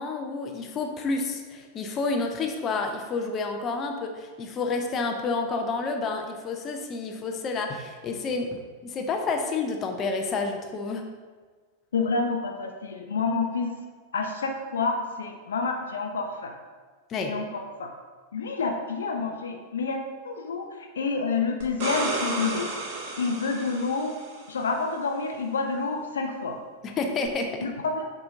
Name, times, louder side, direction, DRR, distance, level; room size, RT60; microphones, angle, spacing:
voice 1, 0.0-11.1 17.1-17.3 26.8-27.5, left 3 dB, 30° left, 3 dB, 0.6 m, -29 dB
voice 2, 11.9-13.8 14.1-16.5 17.3-17.9 18.3-22.7 23.2-24.1 24.5-26.6 27.6-28.1, left 4 dB, 65° left, 3 dB, 0.6 m, -28 dB
sound 1, 21.6-24.4 27.3-27.4, right 2 dB, 45° right, 1.3 m, -32 dB
7.1 x 3.9 x 3.6 m, 1.5 s
figure-of-eight pair, 90°, 0 cm